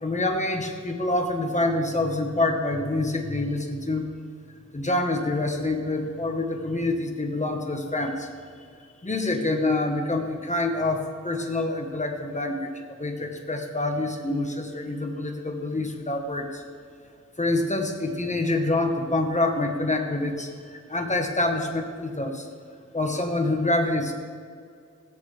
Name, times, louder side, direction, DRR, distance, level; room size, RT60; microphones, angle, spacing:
voice 1, 0.0-4.1 4.7-8.3 9.0-16.6 17.4-22.5 22.9-24.1, left 2 dB, 25° left, 4 dB, 1.3 m, -26 dB
16.0 x 8.8 x 3.4 m, 2.3 s
wide cardioid pair, 80°, 29 cm